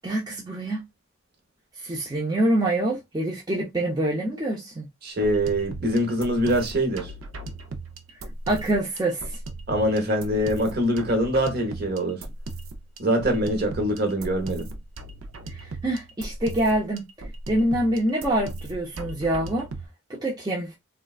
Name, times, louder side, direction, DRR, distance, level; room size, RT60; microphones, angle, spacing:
voice 1, 0.0-0.8 1.8-4.8 8.5-9.3 15.5-17.1 17.5-19.7 20.2-20.7, right 1 dB, 20° right, 0.6 m, -25 dB
voice 2, 5.0-7.1 9.7-12.2 13.0-14.7, equal, 50° right, 0.9 m, -24 dB
sound 1, 5.1-19.9, right 2 dB, 75° right, 0.5 m, -37 dB
3.6 x 2.2 x 2.4 m
head